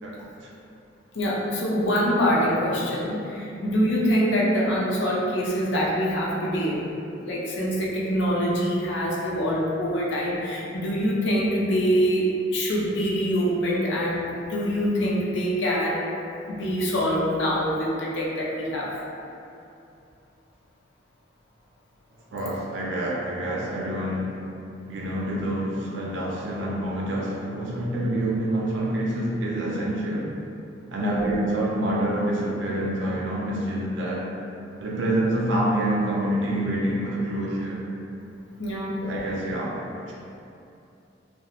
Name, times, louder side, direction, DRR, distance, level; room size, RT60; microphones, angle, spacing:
voice 1, 0.0-0.5 22.3-24.4 24.9-30.3 30.9-34.3 34.8-37.8 39.0-39.8 40.0-40.1, right 1 dB, 70° right, -3 dB, 0.4 m, -27 dB
voice 2, 1.1-6.8 7.2-16.1 16.5-18.9 31.0-31.3 38.6-39.0, equal, 65° left, -5 dB, 0.5 m, -24 dB
2.9 x 2.1 x 2.4 m, 2.7 s
head